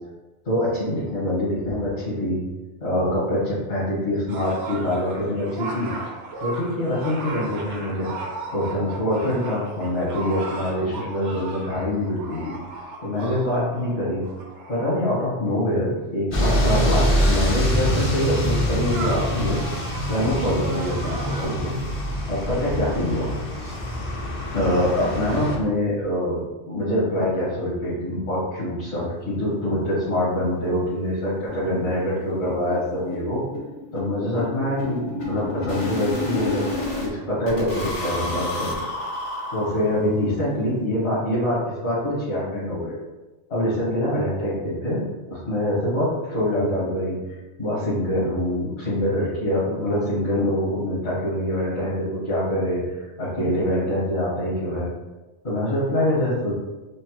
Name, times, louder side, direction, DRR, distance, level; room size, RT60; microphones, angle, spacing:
voice 1, 0.4-2.4 2.8-5.9 6.4-8.1 8.5-12.6 13.0-14.2 14.7-19.6 20.1-21.7 22.3-23.3 23.6-23.7 24.5-26.4 26.7-33.4 33.9-36.7 37.0-38.7 39.5-43.0 43.5-54.9 55.4-56.5, left 1 dB, 65° left, -10 dB, 1.6 m, -25 dB
sound 1, 4.3-15.1 16.0-16.1 16.7-21.5, right 2 dB, 65° right, 1.0 m, -36 dB
sound 2, 16.3-25.6, equal, 35° left, 0.6 m, -24 dB
sound 3, 30.2-30.3 30.6-30.7 31.0-31.1 31.5-31.6 31.9-37.1 37.5-40.2, left 2 dB, 80° left, 1.2 m, -31 dB
5.0 x 2.1 x 2.9 m, 1.1 s
omnidirectional pair, 1.2 m